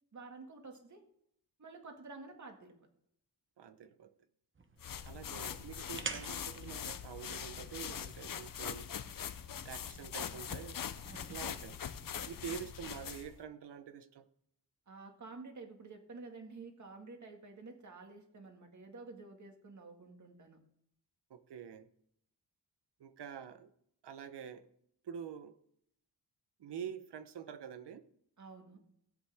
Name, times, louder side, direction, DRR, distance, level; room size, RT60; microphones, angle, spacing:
voice 1, 0.1-1.0 1.6-2.7 11.1-11.3 14.9-20.6 28.4-28.8, right 3 dB, 45° right, 4 dB, 2.1 m, -50 dB
voice 2, 3.6-4.1 5.0-8.9 9.6-10.8 11.3-11.8 12.3-14.3 21.3-21.9 23.0-23.7 24.0-24.7 25.0-25.6 26.6-28.0, right 8 dB, 85° right, 12 dB, 1.0 m, -46 dB
sound 1, 4.6-13.1, right 4 dB, 30° right, 1.1 m, -51 dB
sound 2, 4.8-13.4, left 8 dB, 55° left, 0.8 m, -42 dB
17.0 x 8.4 x 3.5 m, 0.72 s
wide cardioid pair, 120°, 39 cm